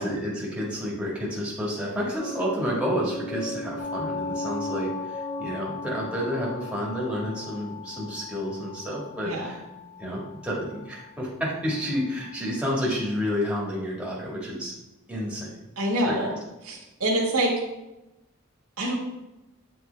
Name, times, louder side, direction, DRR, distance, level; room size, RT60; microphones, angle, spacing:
voice 1, 0.0-9.6 10.0-14.7 15.1-15.5 16.0-16.4, equal, 5° right, -5 dB, 1.7 m, -30 dB
sound 1, 2.1-7.9, equal, 15° left, 0.4 m, -36 dB
sound 2, 3.8-13.6, left 8 dB, 50° left, 2.0 m, -41 dB
voice 2, 9.2-9.5 15.8-16.3 16.6-17.5 18.8-19.0, right 1 dB, 90° right, -2 dB, 1.7 m, -25 dB
7.8 x 4.6 x 3.4 m, 0.98 s
head